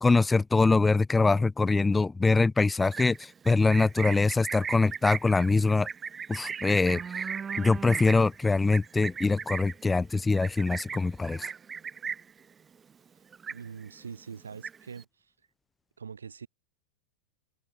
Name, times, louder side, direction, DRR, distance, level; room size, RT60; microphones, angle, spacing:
voice 1, 0.0-5.9 6.3-7.0 7.6-11.5, left 3 dB, 10° left, 0.5 m, -23 dB
Livestock farm animals working animals, 2.8-12.4 12.7-13.1 13.3-14.0 14.3-15.0, right 6 dB, 20° right, 1.4 m, -37 dB
voice 2, 13.5-15.3 16.0-16.5, right 6 dB, 70° right, 7.4 m, -43 dB
figure-of-eight pair, 90°, 0 cm